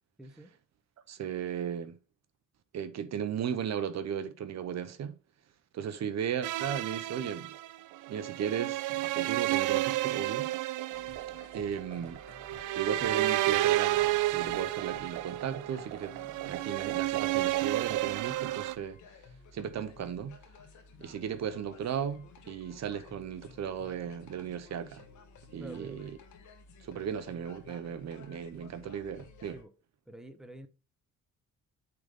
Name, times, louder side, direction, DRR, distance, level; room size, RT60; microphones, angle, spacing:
voice 1, 0.2-0.5 25.6-26.0 29.5-29.7 30.1-30.7, right 1 dB, ahead, 1.0 m, -47 dB
voice 2, 1.1-2.0 2.7-5.1 5.7-7.5 8.1-10.5 11.5-12.2 12.7-19.0 19.5-20.4 21.0-25.0 25.5-26.1 26.8-29.6, right 8 dB, 60° right, 0.9 m, -36 dB
sound 1, 6.4-18.8, right 16 dB, 85° right, 0.5 m, -31 dB
sound 2, 10.9-29.6, left 5 dB, 75° left, 1.4 m, -54 dB
8.8 x 4.0 x 3.6 m
cardioid pair, 90°, 30 cm